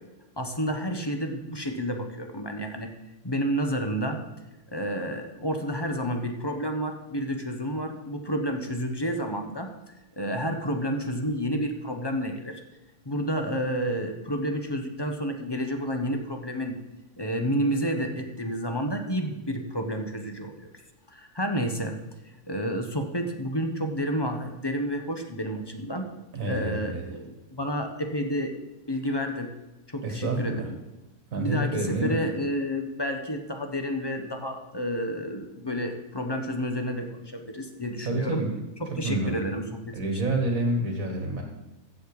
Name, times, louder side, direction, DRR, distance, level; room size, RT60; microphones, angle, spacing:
voice 1, 0.4-2.9 3.2-4.2 4.7-9.7 10.2-12.6 13.0-16.7 17.2-20.7 21.1-22.0 22.5-26.1 26.4-28.5 28.9-29.5 29.9-30.8 31.4-38.4 39.0-40.2, equal, 20° left, 4 dB, 1.0 m, -30 dB
voice 2, 26.3-27.1 30.0-30.7 31.3-32.1 38.0-38.5 39.0-39.5 39.9-41.4, right 2 dB, 60° right, 3 dB, 1.9 m, -28 dB
14.0 x 7.8 x 4.9 m, 1.0 s
omnidirectional pair, 1.6 m